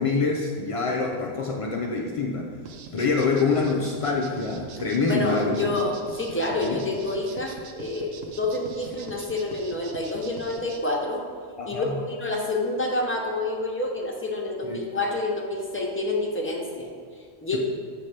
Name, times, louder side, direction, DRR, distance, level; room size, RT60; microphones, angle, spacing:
voice 1, 0.0-2.5 2.9-5.8 6.6-6.8 11.6-11.9 14.6-14.8, left 4 dB, 60° left, -1 dB, 0.3 m, -25 dB
sound 1, 2.6-10.8, right 4 dB, 80° right, 1.0 m, -43 dB
voice 2, 5.1-11.2 11.6-16.9 17.4-17.6, left 2 dB, 10° left, -1 dB, 0.8 m, -28 dB
7.5 x 3.3 x 5.7 m, 2.1 s
omnidirectional pair, 1.3 m